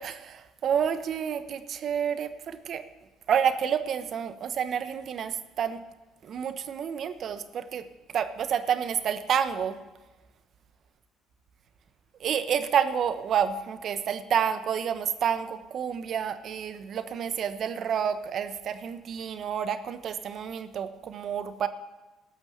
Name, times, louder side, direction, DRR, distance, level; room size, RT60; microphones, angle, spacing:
voice 1, 0.0-2.8 3.3-5.8 6.2-7.8 8.1-9.8 12.2-21.7, right 8 dB, 55° right, 11 dB, 1.0 m, -29 dB
18.0 x 6.2 x 6.5 m, 1.1 s
supercardioid pair, 70°, 0 cm